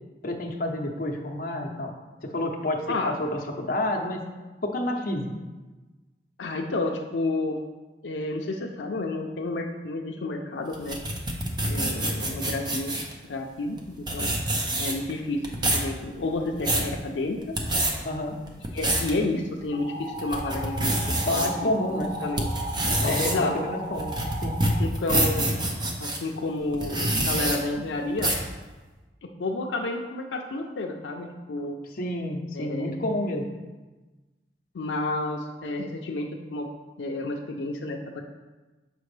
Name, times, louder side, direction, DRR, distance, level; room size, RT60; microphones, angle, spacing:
voice 1, 0.2-1.9 2.2-4.3 4.6-5.3 18.0-18.4 21.3-22.1 23.0-24.1 24.4-24.6 31.9-33.5, left 1 dB, 50° left, 1 dB, 0.8 m, -29 dB
voice 2, 6.4-7.6 8.0-11.0 11.6-12.9 13.3-14.3 14.8-15.4 15.7-17.4 18.7-21.7 22.2-22.5 23.0-23.5 24.8-25.5 26.0-28.3 29.2-31.8 32.5-33.0 34.7-36.7 37.0-38.2, left 2 dB, 85° left, 1 dB, 0.5 m, -30 dB
sound 1, 10.7-13.1 13.8-13.9 14.1-15.1 15.4-15.9 16.4-16.9 17.4-17.9 18.5-19.1 19.6-19.7 20.2-21.5 22.0-26.2 26.7-27.6 28.2-28.5, right 1 dB, 25° right, 0.7 m, -26 dB
sound 2, 19.7-24.7, right 1 dB, 55° right, 0.9 m, -36 dB
6.8 x 5.1 x 3.2 m, 1.2 s
head